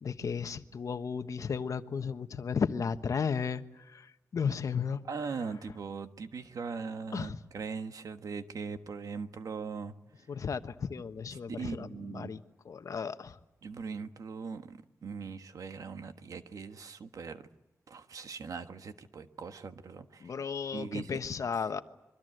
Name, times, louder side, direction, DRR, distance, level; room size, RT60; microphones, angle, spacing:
voice 1, 0.0-5.0 7.1-7.4 10.3-12.4 12.6-13.4 20.2-21.8, left 6 dB, 70° left, 10 dB, 1.2 m, -34 dB
voice 2, 5.1-9.9 11.3-12.3 13.6-17.4 17.9-20.4 20.7-21.2, right 5 dB, 80° right, 8 dB, 1.5 m, -40 dB
26.5 x 23.5 x 7.9 m, 0.97 s
wide cardioid pair, 140°, 6 cm